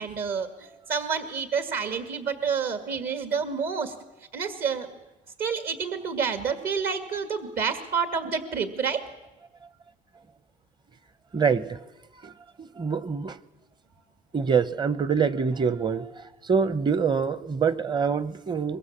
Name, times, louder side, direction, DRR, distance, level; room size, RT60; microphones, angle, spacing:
voice 1, 0.0-3.9 4.3-5.0 5.4-9.0, right 6 dB, 60° right, 2.0 m, -29 dB
voice 2, 11.3-11.8 12.2-12.3 12.6-13.4 14.3-18.8, right 6 dB, 25° right, 0.9 m, -25 dB
24.0 x 21.5 x 7.3 m
cardioid pair, 115°, 17 cm